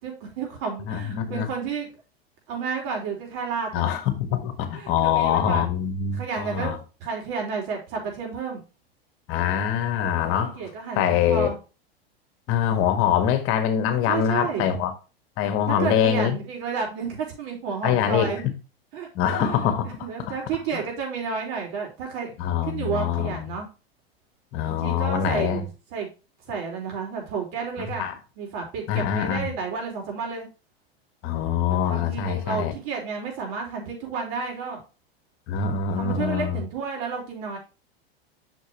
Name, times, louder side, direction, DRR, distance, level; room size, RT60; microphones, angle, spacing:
voice 1, 0.0-1.9 2.5-3.9 4.7-5.7 6.1-8.6 10.2-11.6 14.1-14.7 15.7-18.5 18.9-22.3 22.6-23.7 24.6-26.1 26.5-28.1 28.4-30.5 31.7-34.8 36.0-37.6, right 5 dB, 55° right, 4.7 m, -31 dB
voice 2, 0.9-1.5 3.7-6.8 9.3-10.6 11.0-11.5 12.5-14.9 15.4-16.4 17.8-18.5 19.1-19.9 20.3-20.4 22.4-23.5 24.5-25.6 28.0-28.1 28.9-29.5 31.2-32.7 35.5-36.6, left 9 dB, 45° left, 1.5 m, -24 dB
8.0 x 6.3 x 3.0 m
hypercardioid pair, 95°, 30 cm